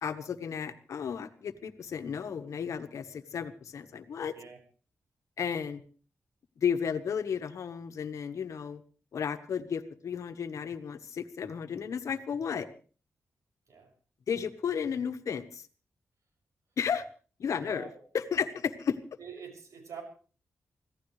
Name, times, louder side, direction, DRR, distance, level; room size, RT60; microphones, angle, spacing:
voice 1, 0.0-4.3 5.4-5.8 6.6-8.8 9.1-12.7 14.3-15.7 16.8-17.0 17.4-17.9 18.1-19.0, left 7 dB, 80° left, 9 dB, 1.3 m, -33 dB
voice 2, 17.6-18.0 18.3-18.4 19.2-20.0, right 6 dB, 90° right, 1 dB, 6.8 m, -45 dB
25.0 x 16.0 x 3.3 m, 0.40 s
wide cardioid pair, 130°, 5 cm